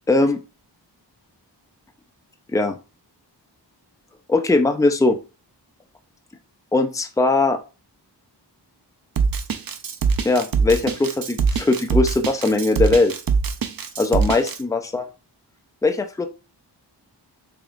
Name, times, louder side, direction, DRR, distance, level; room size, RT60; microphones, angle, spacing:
voice 1, 0.1-0.4 2.5-2.8 4.3-5.2 6.7-7.6 10.2-13.1 14.0-15.1 15.8-16.3, left 3 dB, 10° left, 7 dB, 0.4 m, -20 dB
Drum kit, 9.2-14.6, right 5 dB, 55° right, 0.5 m, -22 dB
3.5 x 3.5 x 2.4 m, 0.31 s
wide cardioid pair, 45°, 42 cm